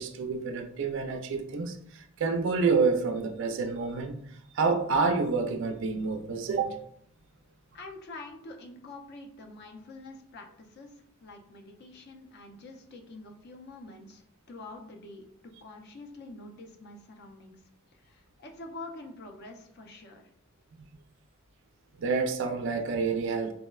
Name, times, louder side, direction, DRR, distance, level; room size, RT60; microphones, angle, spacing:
voice 1, 0.0-6.8 22.0-23.5, right 4 dB, 55° right, 0.3 m, -28 dB
voice 2, 7.7-15.3 15.6-17.6 17.9-20.3, left 2 dB, 50° left, 0.4 m, -46 dB
4.0 x 2.0 x 2.2 m
head